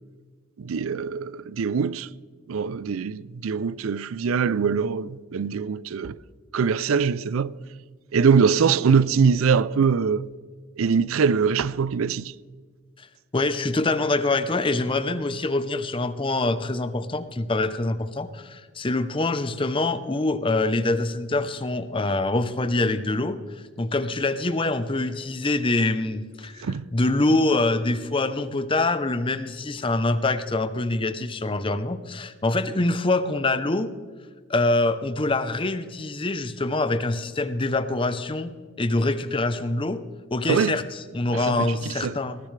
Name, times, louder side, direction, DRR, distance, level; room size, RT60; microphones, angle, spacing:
voice 1, 0.6-2.1 2.5-6.2 6.5-7.6 8.1-10.3 10.8-12.3 26.6-26.9 40.5-40.8 41.3-42.2, right 6 dB, 85° right, 0.4 m, -23 dB
voice 2, 13.3-23.4 23.8-33.9 34.5-40.0 40.3-42.4, left 2 dB, 25° left, 0.7 m, -25 dB
19.5 x 14.0 x 3.3 m
head